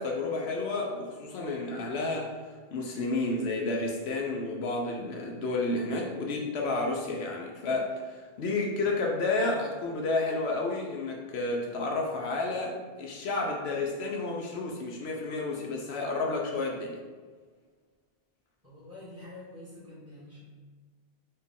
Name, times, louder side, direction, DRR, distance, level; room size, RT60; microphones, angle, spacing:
voice 1, 0.0-17.0, left 2 dB, 75° left, 0 dB, 0.8 m, -31 dB
voice 2, 18.6-20.4, left 1 dB, 15° right, -9 dB, 1.5 m, -46 dB
4.1 x 2.4 x 3.6 m, 1.5 s
omnidirectional pair, 1.1 m